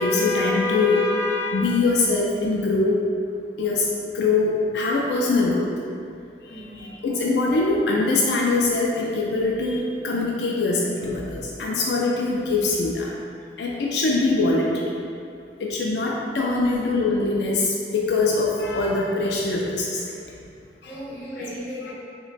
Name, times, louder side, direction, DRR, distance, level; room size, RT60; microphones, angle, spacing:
voice 1, 0.0-3.0 3.6-5.7 6.5-13.1 13.6-14.9 15.6-20.1 20.8-20.9 21.9-22.0, left 3 dB, 75° left, -2 dB, 0.3 m, -23 dB
voice 2, 6.5-7.0 20.9-21.9, equal, 50° left, -9 dB, 1.0 m, -37 dB
2.9 x 2.2 x 4.0 m, 2.5 s
head